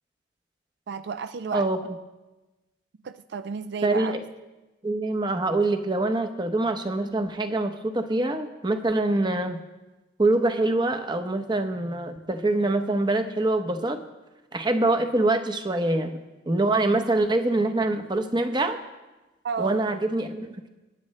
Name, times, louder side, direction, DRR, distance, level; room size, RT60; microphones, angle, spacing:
voice 1, 0.9-1.7 3.0-4.2 19.4-19.8, right 6 dB, 60° right, 11 dB, 0.4 m, -32 dB
voice 2, 3.8-4.2 4.8-9.6 10.2-14.0 14.5-16.2 16.5-18.8 19.6-20.7, right 2 dB, 25° right, 7 dB, 0.8 m, -24 dB
25.5 x 9.6 x 3.2 m, 1.1 s
head